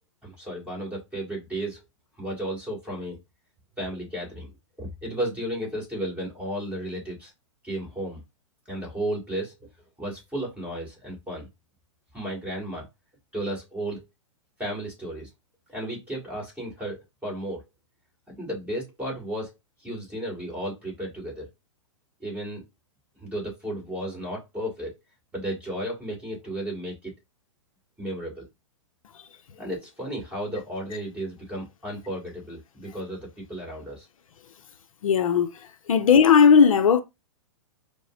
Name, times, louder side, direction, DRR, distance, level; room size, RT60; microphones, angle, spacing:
voice 1, 0.2-1.8 2.2-3.2 3.8-4.5 4.8-7.3 7.6-8.2 8.7-9.5 10.0-11.5 12.1-12.9 13.3-14.0 14.6-15.3 15.7-17.6 18.3-19.5 19.8-21.5 22.2-22.6 23.2-25.0 25.3-27.1 28.0-28.5 29.6-34.1, right 1 dB, 10° right, 1.8 m, -33 dB
voice 2, 35.0-35.5 35.9-37.0, left 6 dB, 80° left, 0.5 m, -16 dB
4.8 x 2.0 x 2.4 m
hypercardioid pair, 120°, 17 cm